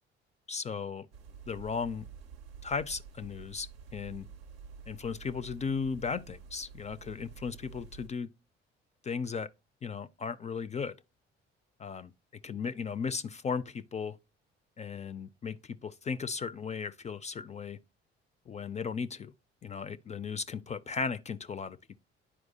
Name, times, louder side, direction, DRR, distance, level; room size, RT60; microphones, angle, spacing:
voice 1, 0.5-1.1 1.5-2.1 2.6-4.3 4.9-8.3 9.0-9.5 9.8-10.9 11.8-12.1 12.4-14.2 14.8-17.8 18.5-19.3 19.6-21.8, left 5 dB, 25° left, 0.3 m, -36 dB
sound 1, 1.1-8.1, right 6 dB, 85° right, 0.5 m, -49 dB
9.9 x 4.6 x 2.7 m
hypercardioid pair, 50°, 31 cm